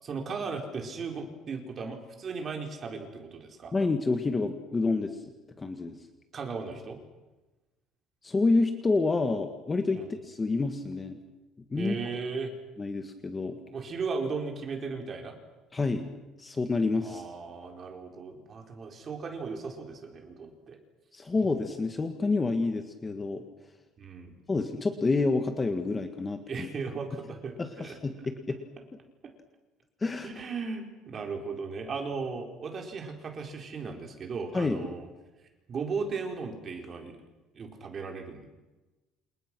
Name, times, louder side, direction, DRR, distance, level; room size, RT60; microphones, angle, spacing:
voice 1, 0.0-3.7 6.3-7.0 9.9-10.1 11.8-12.5 13.7-15.4 17.0-20.8 24.0-24.3 26.5-28.0 30.2-35.1 35.7-37.2 37.5-38.5, right 4 dB, 25° right, 3 dB, 4.4 m, -36 dB
voice 2, 3.7-5.2 5.6-6.0 8.2-11.2 11.7-12.0 12.8-13.6 15.7-16.1 16.4-17.2 21.1-23.4 24.5-26.7 27.6-28.6 30.0-30.3 34.5-34.8, left 3 dB, 15° left, 6 dB, 1.7 m, -28 dB
29.0 x 28.5 x 6.2 m, 1.1 s
cardioid pair, 180°, 0 cm